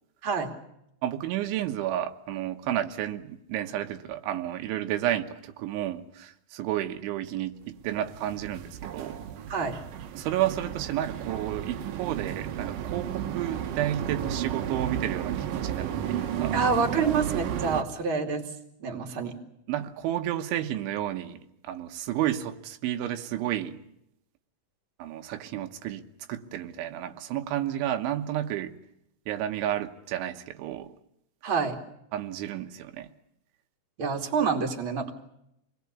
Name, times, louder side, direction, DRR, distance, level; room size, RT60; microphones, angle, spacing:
voice 1, 0.2-0.5 9.5-9.8 16.5-18.4 18.8-19.4 31.4-31.8 34.0-35.1, right 5 dB, 35° right, 3 dB, 2.7 m, -27 dB
voice 2, 1.0-9.2 10.1-16.6 19.7-23.8 25.0-26.0 26.3-28.7 29.3-30.9 32.1-33.1, right 12 dB, 85° right, 6 dB, 3.6 m, -31 dB
sound 1, 7.8-17.8, right 10 dB, 65° right, 2.3 m, -33 dB
27.0 x 20.0 x 8.4 m, 0.80 s
omnidirectional pair, 5.3 m